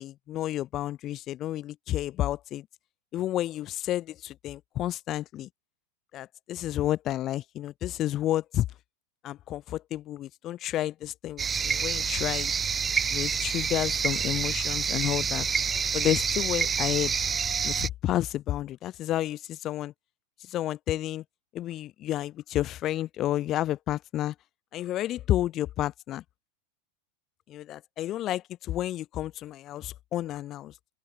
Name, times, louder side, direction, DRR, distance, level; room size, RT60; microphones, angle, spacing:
voice 1, 0.0-2.7 3.1-5.5 6.1-8.7 9.2-12.5 13.1-15.5 15.9-17.1 17.6-19.9 20.5-21.2 21.5-24.3 24.7-26.2 27.5-30.7, left 13 dB, 35° left, 1.2 m, -31 dB
sound 1, 11.4-17.9, right 6 dB, 20° right, 2.7 m, -28 dB
open air
figure-of-eight pair, 90°, 0 cm